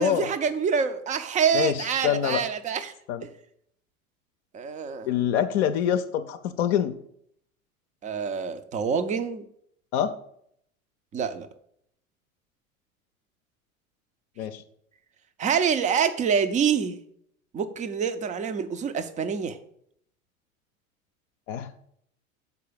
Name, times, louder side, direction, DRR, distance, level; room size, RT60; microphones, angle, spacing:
voice 1, 0.0-2.9 3.2-3.3 4.5-5.1 8.0-9.4 11.1-11.5 15.4-17.0 17.5-19.6, right 6 dB, 20° right, 11 dB, 0.5 m, -26 dB
voice 2, 2.0-2.4 3.1-3.2 5.1-6.9 9.9-10.1 14.4-14.6 21.5-21.7, left 9 dB, 50° left, 8 dB, 0.6 m, -25 dB
7.0 x 4.7 x 6.7 m, 0.70 s
figure-of-eight pair, 80°, 42 cm